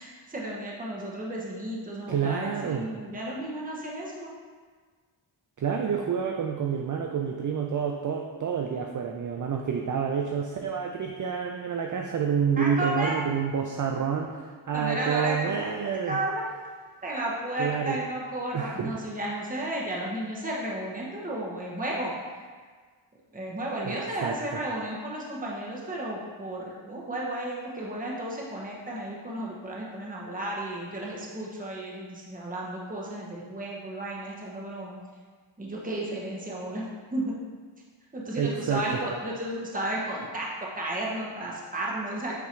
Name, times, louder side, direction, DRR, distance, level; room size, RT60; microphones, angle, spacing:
voice 1, 0.0-4.3 12.6-13.2 14.7-15.7 16.1-16.5 17.0-22.2 23.3-35.0 35.6-37.4 38.1-42.3, right 1 dB, 15° right, -3 dB, 0.9 m, -33 dB
voice 2, 2.1-2.9 5.6-16.2 17.6-18.0 18.5-18.9 23.9-24.4 38.4-38.8, right 7 dB, 40° right, 1 dB, 0.4 m, -28 dB
8.3 x 3.6 x 3.2 m, 1.5 s
wide cardioid pair, 105°, 47 cm